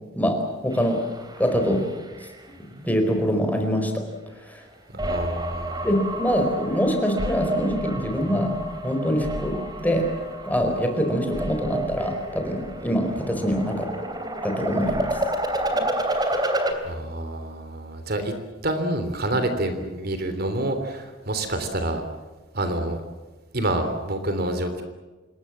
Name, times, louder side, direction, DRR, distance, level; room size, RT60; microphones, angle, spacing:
voice 1, 0.6-1.0 1.4-1.8 2.4-4.0 4.4-4.6 5.8-10.1 10.4-13.9 14.4-15.2 15.7-15.9 19.3-19.4, equal, 10° left, 4 dB, 4.6 m, -24 dB
sound 1, 0.7-2.4 2.7-3.3 5.0-16.7, right 1 dB, 20° right, 3.1 m, -30 dB
voice 2, 5.0-5.9 16.1-16.5 16.8-18.3 18.6-22.0 22.5-23.0 23.5-24.8, right 1 dB, 50° right, 8 dB, 3.2 m, -27 dB
27.0 x 22.0 x 7.5 m, 1.3 s
head